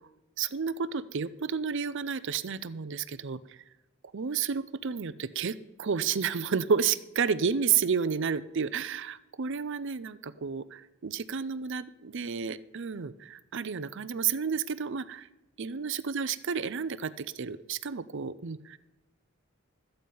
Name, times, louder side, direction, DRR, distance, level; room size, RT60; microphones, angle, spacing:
voice 1, 0.4-3.4 4.1-15.3 15.6-18.8, right 6 dB, 55° right, 16 dB, 0.5 m, -31 dB
13.5 x 9.0 x 5.4 m, 0.99 s
head